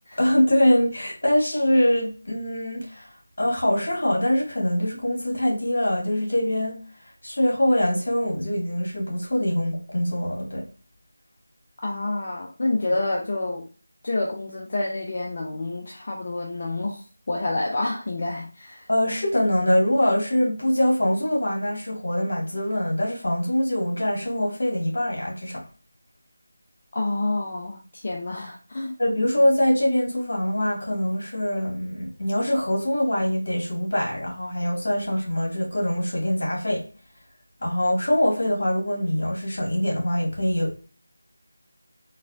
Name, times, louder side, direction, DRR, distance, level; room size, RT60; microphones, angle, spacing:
voice 1, 0.2-3.1 3.4-10.7 18.9-25.6 29.0-36.8 37.6-40.9, left 1 dB, 65° left, -2 dB, 1.8 m, -23 dB
voice 2, 11.8-13.7 14.0-18.8 26.9-28.9, left 2 dB, 40° left, -1 dB, 0.6 m, -28 dB
4.0 x 2.3 x 2.6 m, 0.35 s
figure-of-eight pair, 170°, 0 cm